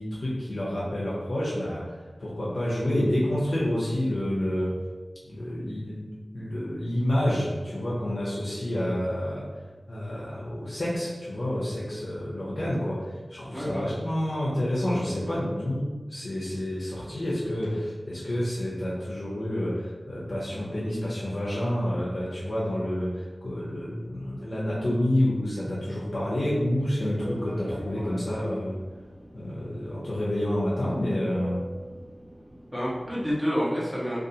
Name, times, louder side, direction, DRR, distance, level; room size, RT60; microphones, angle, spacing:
voice 1, 0.0-4.8 5.2-6.0 6.3-9.5 9.9-28.8 29.3-31.6, left 1 dB, 65° left, -7 dB, 0.5 m, -29 dB
voice 2, 13.5-13.9 32.5-34.2, equal, ahead, -6 dB, 0.8 m, -28 dB
sound 1, 17.6-18.8 20.5-20.6, equal, 30° right, 0.8 m, -46 dB
Fixed-wing aircraft airplane, 26.9-33.3, equal, 70° right, 0.8 m, -42 dB
2.5 x 2.3 x 2.7 m, 1.3 s
wide cardioid pair, 65°, 0 cm